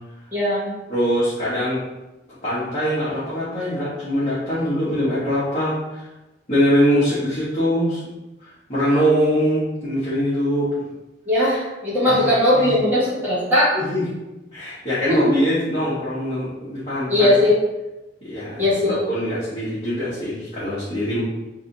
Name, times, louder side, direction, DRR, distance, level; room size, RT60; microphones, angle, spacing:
voice 1, 0.3-0.7 11.3-13.7 15.1-15.3 17.1-17.6 18.6-19.0, left 1 dB, 10° right, -10 dB, 1.2 m, -18 dB
voice 2, 0.9-1.8 2.4-6.0 6.5-8.0 8.4-10.7 12.1-12.2 12.6-12.8 13.7-14.0 14.5-17.4 18.2-21.2, equal, 35° left, -12 dB, 1.2 m, -23 dB
3.2 x 2.7 x 4.0 m, 1.0 s
head